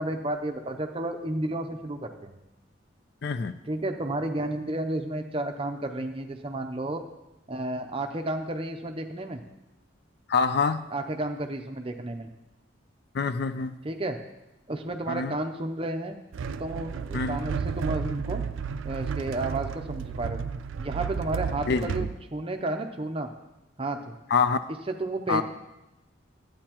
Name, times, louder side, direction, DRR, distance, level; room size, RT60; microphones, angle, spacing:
voice 1, 0.0-2.4 3.6-7.0 7.5-9.4 10.9-12.3 13.8-14.2 14.7-16.2 16.6-18.4 18.8-20.4 20.8-23.3 23.8-24.1 24.7-25.4, right 2 dB, 30° right, 6 dB, 0.6 m, -32 dB
voice 2, 3.2-3.5 10.3-10.8 13.1-13.8 15.1-15.3 17.1-17.4 21.7-22.1 24.3-24.6 25.3-25.4, left 5 dB, 55° left, 12 dB, 0.4 m, -25 dB
sound 1, 16.3-22.1, right 6 dB, 80° right, 0.4 m, -32 dB
11.5 x 8.7 x 2.9 m, 0.99 s
head